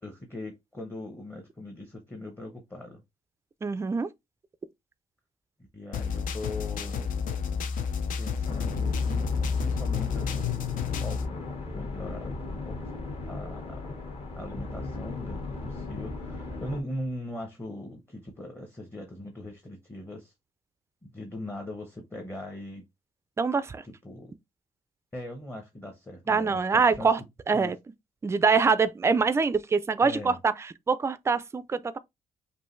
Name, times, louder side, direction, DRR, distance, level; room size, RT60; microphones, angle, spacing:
voice 1, 0.0-3.0 5.7-7.1 8.2-10.5 11.0-12.9 13.2-13.9 14.3-20.3 21.0-22.8 23.8-24.3 25.1-27.1 27.5-27.7 30.0-30.4, left 1 dB, 15° left, 0.8 m, -40 dB
voice 2, 3.6-4.1 23.4-23.8 26.3-27.2 27.5-27.8 28.2-32.0, right 5 dB, 20° right, 0.3 m, -24 dB
sound 1, 5.9-11.3, left 6 dB, 70° left, 0.6 m, -30 dB
sound 2, 8.4-16.8, left 3 dB, 45° left, 1.2 m, -37 dB
5.4 x 2.5 x 3.1 m
cardioid pair, 155°, 14 cm